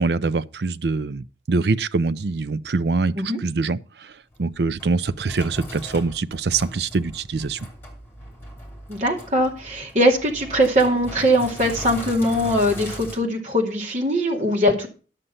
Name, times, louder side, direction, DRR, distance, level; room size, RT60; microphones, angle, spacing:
voice 1, 0.0-4.1 4.4-7.6, right 3 dB, 70° right, 0.5 m, -24 dB
Sink (filling or washing), 4.3-13.2, equal, 10° left, 3.0 m, -38 dB
voice 2, 8.9-14.9, equal, 45° right, 2.5 m, -21 dB
11.0 x 6.6 x 5.6 m
head